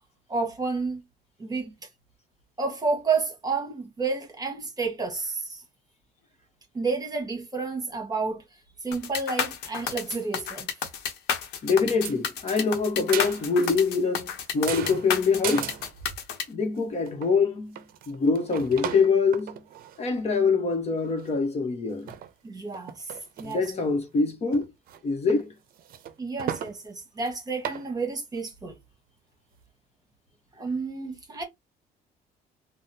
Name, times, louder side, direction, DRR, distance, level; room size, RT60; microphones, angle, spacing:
voice 1, 0.3-1.0 1.4-1.7 2.6-5.6 6.7-8.4 8.8-10.7 22.4-23.6 26.2-28.7 30.6-31.4, right 4 dB, 25° right, 1.1 m, -30 dB
sound 1, 8.9-16.4, left 7 dB, 85° left, 0.7 m, -31 dB
voice 2, 11.6-14.3 14.5-15.8 16.5-19.6 20.0-22.1 23.4-24.7 25.0-25.5, left 4 dB, 40° left, 0.9 m, -24 dB
sound 2, 11.8-12.2 12.5-13.9 14.2-16.3 16.8-16.9 17.1-17.3 17.8-20.2 20.7-20.8 21.0-21.5 22.0-22.3 22.7-23.7 24.0-24.1 24.5-25.0 25.3-25.4 25.7-26.8 27.2-27.3 27.6-27.9, right 10 dB, 60° right, 0.5 m, -37 dB
3.6 x 2.0 x 2.7 m
cardioid pair, 110°, 17 cm